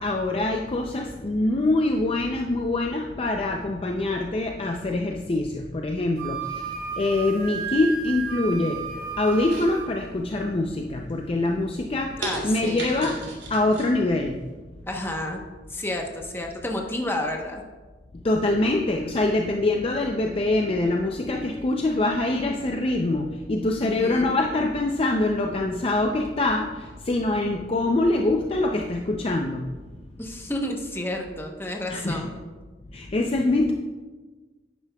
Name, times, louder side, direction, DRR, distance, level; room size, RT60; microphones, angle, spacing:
voice 1, 0.0-12.2 12.4-13.2 13.5-14.5 18.1-29.8 31.9-32.3 32.9-33.7, left 2 dB, 35° left, 2 dB, 0.5 m, -24 dB
Wind instrument woodwind instrument, 6.2-9.9, right 6 dB, 60° right, 1.3 m, -33 dB
sound 1, 9.3-10.3 10.7-11.1 11.6-11.7 12.2-13.9 14.3-14.4, right 2 dB, 85° right, 2.8 m, -35 dB
voice 2, 12.2-12.9 14.9-15.4 15.7-17.6 23.8-24.3 30.2-32.4, left 1 dB, 15° left, 1 dB, 0.9 m, -31 dB
10.5 x 9.5 x 2.3 m, 1.3 s
head